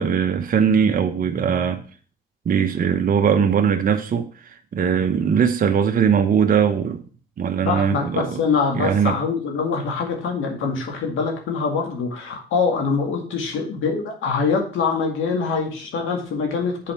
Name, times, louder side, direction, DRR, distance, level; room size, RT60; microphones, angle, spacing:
voice 1, 0.0-1.8 2.5-7.0 7.4-8.4 8.7-9.1, right 7 dB, 45° right, 0.9 m, -20 dB
voice 2, 7.6-16.9, left 5 dB, 80° left, 2.1 m, -24 dB
7.5 x 4.2 x 5.8 m
cardioid pair, 90°, 20 cm